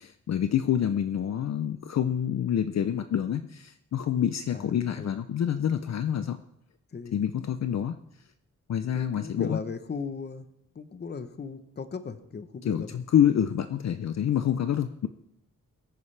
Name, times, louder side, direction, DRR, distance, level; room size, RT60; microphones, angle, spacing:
voice 1, 0.0-6.4 7.1-8.0 8.7-9.6 12.7-15.1, left 9 dB, 55° left, 9 dB, 0.6 m, -27 dB
voice 2, 4.5-5.2 6.9-7.2 8.9-10.5 10.7-12.9, left 5 dB, 30° left, 10 dB, 0.9 m, -37 dB
22.0 x 9.5 x 3.3 m, 0.78 s
wide cardioid pair, 145°, 32 cm